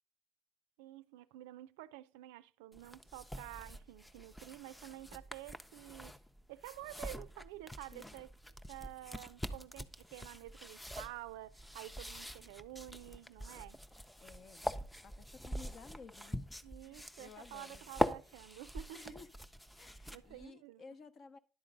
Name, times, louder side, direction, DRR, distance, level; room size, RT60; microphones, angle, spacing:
voice 1, 0.8-6.2 6.5-8.3 8.7-13.8 16.6-19.2 20.1-20.8, right 16 dB, 85° right, 0.4 m, -50 dB
sound 1, 2.7-20.5, left 1 dB, 5° left, 0.6 m, -44 dB
voice 2, 14.2-14.7 15.0-16.4 16.8-17.8 18.9-19.3 19.8-21.4, left 5 dB, 45° left, 0.8 m, -55 dB
10.5 x 3.9 x 5.2 m
supercardioid pair, 85°, 0 cm